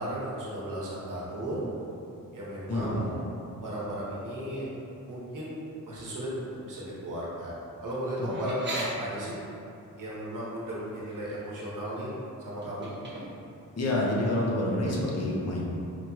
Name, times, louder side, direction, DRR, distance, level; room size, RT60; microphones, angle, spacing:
voice 1, 0.0-1.6 2.3-3.2 3.6-4.7 5.1-5.6 5.8-7.6 7.8-9.4 10.0-12.9, right 1 dB, 65° right, -6 dB, 1.0 m, -35 dB
voice 2, 2.7-3.0 8.2-8.3 13.8-15.6, left 1 dB, 50° left, -4 dB, 0.7 m, -28 dB
sound 1, 8.3-8.9 10.6-10.8 11.1-11.6 12.6-13.6, right 2 dB, 35° right, 0.8 m, -38 dB
4.6 x 2.8 x 2.3 m, 2.7 s
wide cardioid pair, 105°, 34 cm